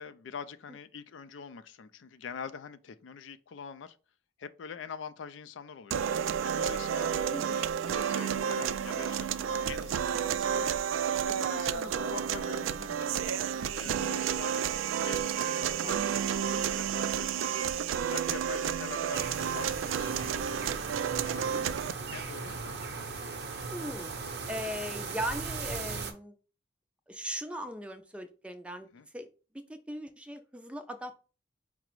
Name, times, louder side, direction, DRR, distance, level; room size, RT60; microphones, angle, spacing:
voice 1, 0.0-4.0 4.4-6.1 6.4-10.7 11.2-13.2 13.7-17.6 18.0-20.5 21.2-21.7 22.1-22.8 28.9-29.1, left 6 dB, 75° left, 0.4 m, -44 dB
sound 1, 5.9-21.9, right 8 dB, 90° right, 0.3 m, -31 dB
voice 2, 7.3-7.7 23.7-24.1 24.5-26.3 27.1-28.9 29.1-29.3 29.5-31.1, equal, 5° right, 0.4 m, -38 dB
sound 2, 19.1-26.1, right 4 dB, 55° right, 0.7 m, -38 dB
4.8 x 2.0 x 4.5 m
head